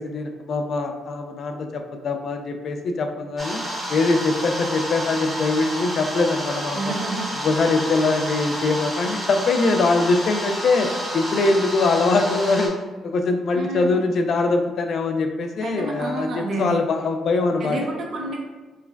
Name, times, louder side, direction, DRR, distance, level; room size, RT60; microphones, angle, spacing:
voice 1, 0.0-3.6 3.9-6.8 7.4-12.7 13.0-17.8, left 3 dB, 60° left, 5 dB, 0.4 m, -22 dB
sound 1, 3.4-12.7, equal, 10° right, 1.0 m, -30 dB
voice 2, 6.7-7.3 8.0-8.1 13.5-14.0 15.6-16.8 17.6-18.4, right 2 dB, 60° right, 1 dB, 0.6 m, -29 dB
4.6 x 2.2 x 2.2 m, 1.3 s
cardioid pair, 90°, 0 cm